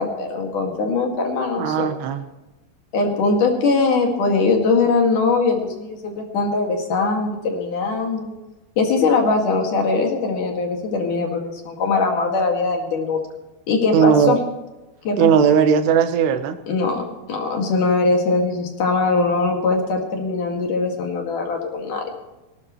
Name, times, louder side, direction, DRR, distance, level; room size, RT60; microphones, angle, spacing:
voice 1, 0.0-1.9 2.9-8.3 8.8-13.2 13.7-14.4 15.1-15.3 16.7-22.0, left 3 dB, 55° left, 1 dB, 3.5 m, -21 dB
voice 2, 1.6-2.2 13.9-14.4 15.2-16.6, right 7 dB, 90° right, 8 dB, 3.3 m, -17 dB
20.0 x 17.5 x 3.2 m, 1.0 s
omnidirectional pair, 4.6 m